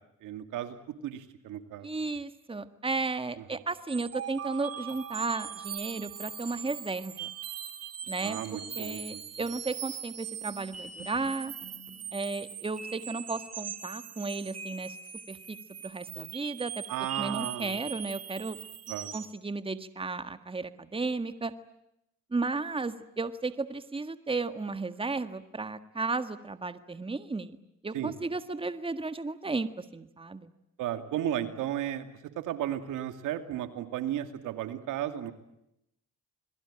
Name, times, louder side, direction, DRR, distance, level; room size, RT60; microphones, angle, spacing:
voice 1, 0.2-0.8 1.0-1.9 8.2-9.5 16.9-17.8 18.9-19.1 27.9-28.1 30.8-32.1 32.4-35.3, right 11 dB, 90° right, 9 dB, 2.6 m, -34 dB
voice 2, 1.8-7.3 8.1-11.5 12.1-15.0 15.3-15.6 15.8-16.8 17.2-18.6 19.1-21.5 22.3-27.6 27.8-30.5, right 3 dB, 20° right, 11 dB, 1.7 m, -34 dB
sound 1, 3.9-19.4, right 8 dB, 55° right, 2.7 m, -41 dB
28.0 x 22.0 x 8.9 m, 0.82 s
cardioid pair, 90°, 30 cm